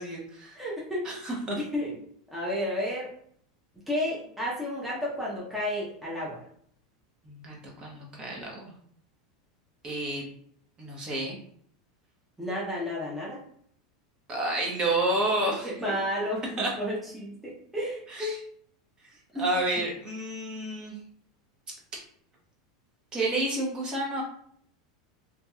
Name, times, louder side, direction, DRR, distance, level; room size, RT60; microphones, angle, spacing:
voice 1, 0.0-0.6 1.0-1.6 7.2-8.7 9.8-10.3 10.8-11.4 14.3-15.8 16.6-16.7 18.1-18.4 19.4-20.9 23.1-24.2, right 2 dB, 25° right, -2 dB, 1.0 m, -30 dB
voice 2, 0.5-1.1 1.7-1.9 2.3-3.1 3.9-6.4 12.4-13.4 15.8-18.4 19.3-19.4, left 1 dB, 5° right, -6 dB, 0.8 m, -32 dB
2.8 x 2.8 x 2.3 m, 0.64 s
supercardioid pair, 120°, 3 cm